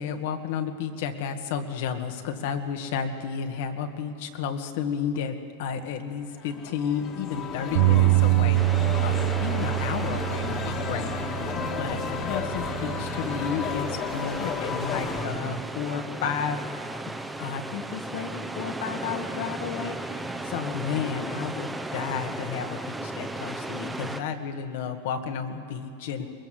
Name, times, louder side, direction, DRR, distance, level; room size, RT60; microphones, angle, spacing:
voice 1, 0.0-16.6 17.4-26.3, left 7 dB, 65° left, 6 dB, 1.9 m, -32 dB
sound 1, 6.4-15.2, left 6 dB, 35° left, 2.0 m, -33 dB
Bass guitar, 7.7-14.0, right 20 dB, 65° right, 0.9 m, -26 dB
sound 2, 8.5-24.2, right 2 dB, 5° right, 0.9 m, -35 dB
21.5 x 21.5 x 7.8 m, 2.5 s
supercardioid pair, 145°, 0 cm